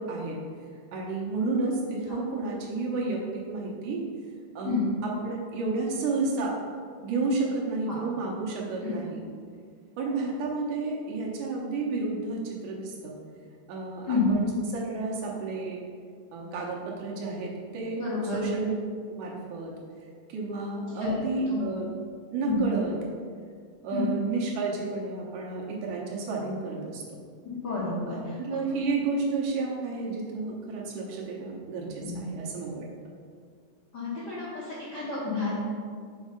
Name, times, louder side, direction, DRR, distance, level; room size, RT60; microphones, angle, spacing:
voice 1, 0.9-4.0 4.6-6.5 7.0-9.2 10.0-13.1 13.7-15.8 16.3-18.0 18.3-18.7 19.1-19.7 20.3-21.9 22.3-22.9 23.8-27.2 28.1-33.1, right 3 dB, 75° right, -2 dB, 2.3 m, -31 dB
voice 2, 17.9-18.5 21.0-21.1 21.5-21.6 22.4-22.6 23.9-24.1 27.4-28.6 32.0-32.2 33.9-35.5, left 4 dB, 75° left, -7 dB, 0.9 m, -30 dB
6.4 x 4.1 x 5.1 m, 2.1 s
omnidirectional pair, 3.7 m